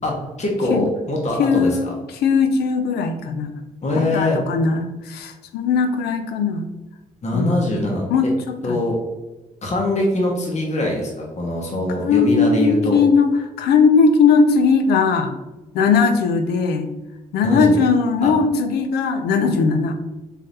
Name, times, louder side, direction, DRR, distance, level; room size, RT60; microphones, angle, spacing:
voice 1, 0.4-1.7 3.8-4.4 7.2-8.1 8.6-9.0 9.6-13.0 17.4-17.8 18.2-18.3, left 1 dB, 45° left, -1 dB, 1.2 m, -22 dB
voice 2, 1.4-3.5 4.1-6.7 7.3-7.6 8.1-8.8 12.0-13.3 13.6-15.4 15.7-16.9 17.3-19.9, left 5 dB, 75° left, 7 dB, 0.6 m, -18 dB
3.6 x 3.6 x 2.8 m, 1.1 s
hypercardioid pair, 50°, 17 cm